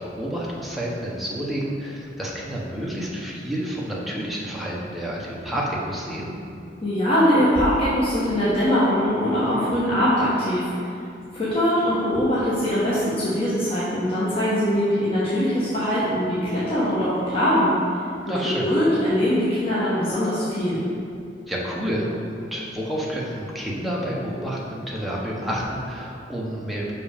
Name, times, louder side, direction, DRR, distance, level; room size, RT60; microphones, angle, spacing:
voice 1, 0.0-6.3 18.3-18.6 21.5-22.1 22.4-26.9, equal, ahead, -5 dB, 1.0 m, -29 dB
voice 2, 6.8-10.7 11.3-17.7 18.6-20.8, equal, 30° left, -10 dB, 1.2 m, -22 dB
6.0 x 5.3 x 5.1 m, 2.5 s
head